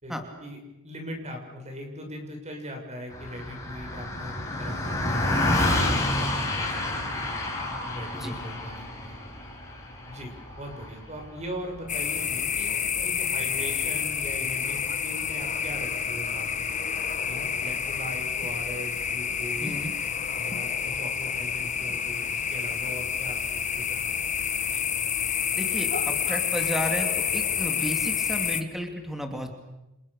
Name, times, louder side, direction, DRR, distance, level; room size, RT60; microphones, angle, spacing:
voice 1, 0.4-7.3 7.9-9.2 10.0-16.8 17.3-19.7 20.3-24.2, equal, 35° right, 4 dB, 6.6 m, -40 dB
Car passing by, 3.1-12.7, left 1 dB, 15° left, 7.1 m, -29 dB
sound 1, 11.9-28.6, left 7 dB, 35° left, 1.6 m, -29 dB
voice 2, 19.6-19.9 25.6-29.5, equal, ahead, 4 dB, 2.7 m, -33 dB
29.5 x 28.0 x 6.7 m, 0.95 s
head